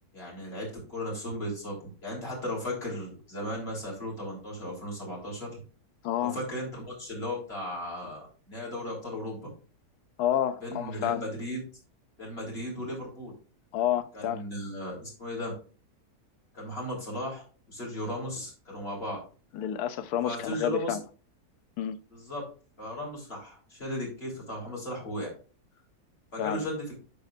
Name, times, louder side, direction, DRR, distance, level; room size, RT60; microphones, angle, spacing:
voice 1, 0.1-5.6 6.2-9.5 10.6-11.6 12.2-13.3 14.1-15.5 16.5-19.2 20.2-21.0 22.1-22.4 22.8-25.3 26.3-27.0, left 1 dB, 40° left, 4.0 m, -36 dB
voice 2, 6.0-6.4 10.2-11.2 13.7-14.4 19.5-21.0 21.8-22.0 26.4-26.7, left 11 dB, 75° left, 1.2 m, -29 dB
12.0 x 5.5 x 2.5 m
omnidirectional pair, 1.7 m